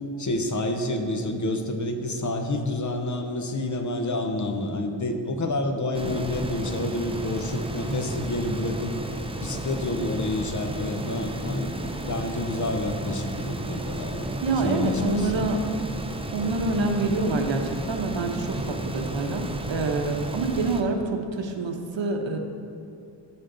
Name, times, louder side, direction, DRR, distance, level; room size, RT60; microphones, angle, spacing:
voice 1, 0.0-8.9 9.4-14.3 14.6-15.5, left 2 dB, 40° left, 5 dB, 0.8 m, -29 dB
sound 1, 5.9-20.8, right 1 dB, 15° right, 0.5 m, -33 dB
voice 2, 14.4-15.6 16.3-22.4, right 3 dB, 90° right, 4 dB, 1.0 m, -27 dB
15.5 x 5.3 x 3.9 m, 2.6 s
wide cardioid pair, 160°, 44 cm